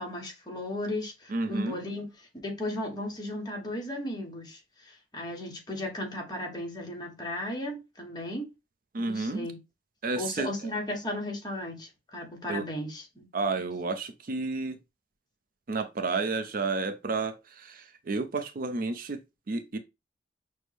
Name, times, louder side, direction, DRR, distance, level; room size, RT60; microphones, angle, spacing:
voice 1, 0.0-2.1 2.4-8.5 9.0-9.6 10.2-13.3, left 1 dB, 25° left, 1.1 m, -35 dB
voice 2, 1.3-1.8 8.9-9.5 10.0-10.7 12.5-12.7 13.3-14.8 15.7-19.8, right 3 dB, 50° right, 0.5 m, -31 dB
6.1 x 2.1 x 3.2 m
head